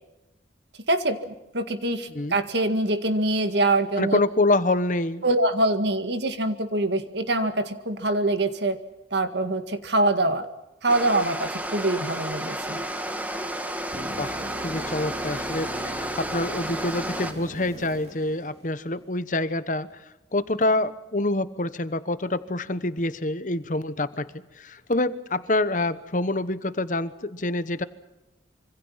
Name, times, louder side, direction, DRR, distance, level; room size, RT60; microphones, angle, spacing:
voice 1, 0.9-4.2 5.2-8.8 9.1-10.5 10.8-12.8, right 2 dB, 70° right, 9 dB, 1.9 m, -24 dB
voice 2, 4.0-5.2 14.2-20.0 20.3-27.8, left 2 dB, 45° left, 13 dB, 1.1 m, -26 dB
sound 1, 10.9-17.3, right 1 dB, 10° right, 1.5 m, -32 dB
sound 2, 13.9-19.0 23.0-23.1, right 1 dB, 35° right, 3.7 m, -40 dB
26.0 x 25.0 x 5.7 m, 1.0 s
head